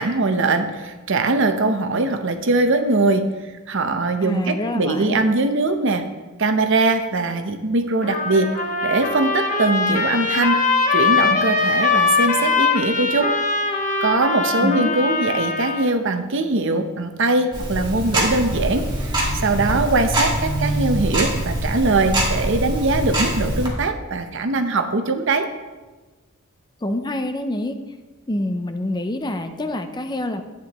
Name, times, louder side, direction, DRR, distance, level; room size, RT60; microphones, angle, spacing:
voice 1, 0.0-3.2 3.7-6.0 6.4-8.5 8.8-10.6 10.9-13.3 14.0-25.5, right 3 dB, 60° right, 7 dB, 0.8 m, -21 dB
voice 2, 4.2-5.2 14.6-15.0 26.8-27.8 28.3-30.4, left 1 dB, 20° left, 7 dB, 0.5 m, -26 dB
Trumpet, 8.0-15.9, left 4 dB, 40° left, 1.0 m, -21 dB
Tick-tock, 17.5-23.7, right 1 dB, 20° right, 1.9 m, -24 dB
11.5 x 9.1 x 3.0 m, 1.2 s
head